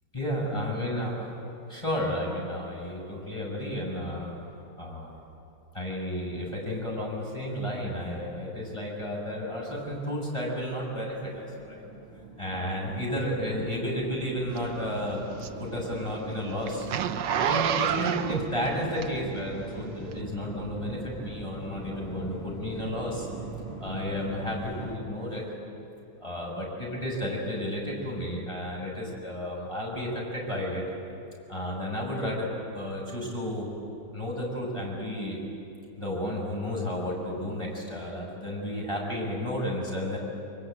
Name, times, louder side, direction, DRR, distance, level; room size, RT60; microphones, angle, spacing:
voice 1, 0.1-1.3 1.7-4.3 4.8-5.1 5.7-11.8 12.4-15.2 15.6-16.9 17.4-23.3 23.8-25.4 26.2-30.8 31.5-32.5 32.7-33.7 34.1-35.4 36.0-40.2, equal, 15° left, -2 dB, 6.5 m, -32 dB
sound 1, 11.1-25.0, right 2 dB, 30° right, 2.7 m, -41 dB
Zipper (clothing), 14.6-19.5 20.1-20.2, right 9 dB, 65° right, 1.4 m, -29 dB
24.0 x 23.5 x 9.0 m, 2.8 s
omnidirectional pair, 2.3 m